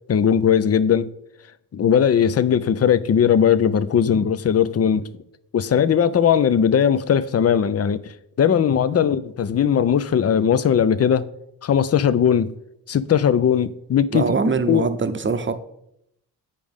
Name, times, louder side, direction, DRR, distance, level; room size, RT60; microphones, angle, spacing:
voice 1, 0.1-1.1 1.7-5.1 5.5-8.0 8.4-11.2 11.6-12.5 12.9-14.3 14.7-14.9, left 8 dB, 35° left, 0.5 m, -18 dB
voice 2, 14.1-15.5, right 4 dB, 30° right, 0.8 m, -22 dB
8.3 x 5.0 x 3.6 m
supercardioid pair, 40°, 42 cm